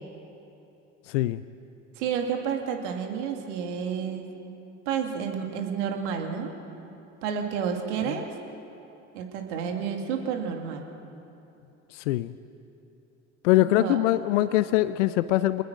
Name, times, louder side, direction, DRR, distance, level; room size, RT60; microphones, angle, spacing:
voice 1, 1.1-1.4 8.1-8.2 11.9-12.3 13.4-15.6, left 15 dB, 75° left, 13 dB, 0.7 m, -23 dB
voice 2, 2.0-4.3 4.9-6.5 7.2-8.3 9.1-10.8 13.8-14.0, right 7 dB, 75° right, 3 dB, 2.4 m, -30 dB
26.0 x 20.0 x 6.3 m, 2.9 s
hypercardioid pair, 70°, 36 cm